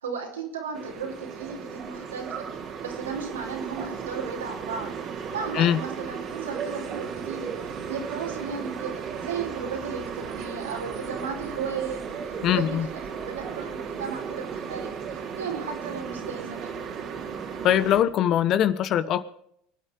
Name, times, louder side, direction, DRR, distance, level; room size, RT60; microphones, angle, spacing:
voice 1, 0.0-2.5 2.8-4.9 5.3-16.8, right 5 dB, 80° right, 1 dB, 4.7 m, -35 dB
sound 1, 0.7-18.0, right 7 dB, 45° right, 3.1 m, -35 dB
voice 2, 12.4-12.9 17.6-19.2, left 10 dB, 45° left, 15 dB, 1.1 m, -22 dB
25.5 x 10.0 x 4.9 m, 0.70 s
figure-of-eight pair, 75°, 0 cm